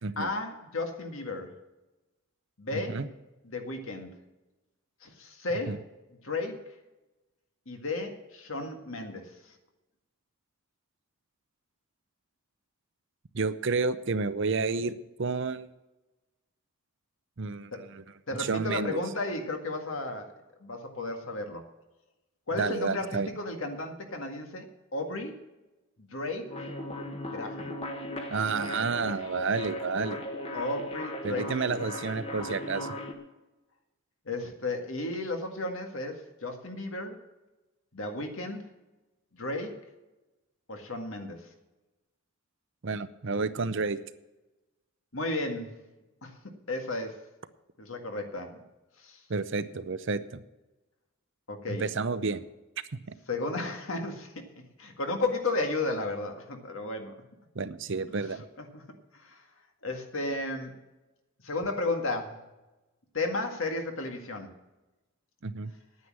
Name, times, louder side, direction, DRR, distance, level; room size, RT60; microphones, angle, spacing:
voice 1, 0.0-1.5 2.6-3.0 3.4-4.1 5.0-5.9 6.2-6.6 7.7-9.3 17.7-17.8 18.3-20.3 20.6-21.6 22.5-25.3 26.0-26.7 27.3-27.8 30.5-31.9 34.3-37.2 37.9-38.6 39.3-39.8 40.7-41.5 45.1-45.7 46.2-46.4 46.7-47.2 47.8-48.6 49.0-49.2 51.5-51.8 53.3-54.3 54.8-57.1 58.6-58.8 59.1-59.4 59.8-60.7 61.4-62.4 63.1-64.5, left 2 dB, 65° left, 4 dB, 1.9 m, -34 dB
voice 2, 2.7-3.1 5.7-5.8 13.3-15.7 17.4-18.0 18.4-19.0 22.6-23.3 28.3-30.2 31.2-32.9 42.8-44.0 49.3-50.4 51.7-52.4 53.1-53.2 57.5-58.4 65.4-65.7, right 4 dB, 55° right, 13 dB, 0.7 m, -30 dB
sound 1, 26.5-33.1, left 1 dB, 25° left, 1.3 m, -37 dB
9.7 x 9.5 x 7.5 m, 1.0 s
head